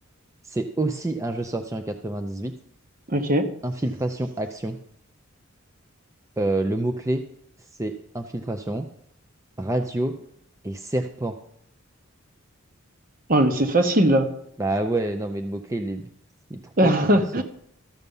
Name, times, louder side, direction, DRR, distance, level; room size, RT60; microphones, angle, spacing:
voice 1, 0.4-2.5 3.6-4.8 6.4-7.2 7.8-8.9 9.6-10.2 10.6-11.4 14.6-16.1 16.5-16.7 17.1-17.4, right 1 dB, 15° right, 6 dB, 0.5 m, -27 dB
voice 2, 3.1-3.5 13.3-14.3 16.8-17.4, right 1 dB, 45° right, 7 dB, 1.1 m, -19 dB
13.5 x 6.8 x 5.4 m, 0.70 s
head